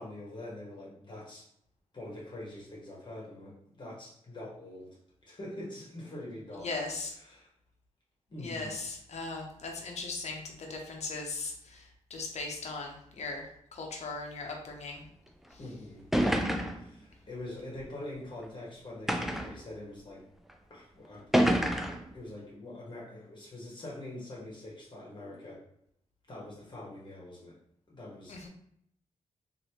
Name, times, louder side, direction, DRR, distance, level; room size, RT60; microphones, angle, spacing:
voice 1, 0.0-1.5 1.9-6.7 7.1-7.5 8.3-8.7 15.6-16.0 16.7-20.2 20.7-21.2 21.8-25.6 26.3-27.5 27.9-28.5, left 1 dB, 40° left, -5 dB, 1.2 m, -44 dB
voice 2, 6.6-7.1 8.4-11.8 12.1-13.4 13.7-15.0 28.3-28.5, left 3 dB, 60° left, 1 dB, 0.8 m, -38 dB
sound 1, 15.5-15.6 16.1-16.9 17.8-17.9 19.1-19.6 20.5-20.6 21.3-22.1, equal, ahead, 0.4 m, -27 dB
3.0 x 2.6 x 2.9 m, 0.71 s
cardioid pair, 75°, 13 cm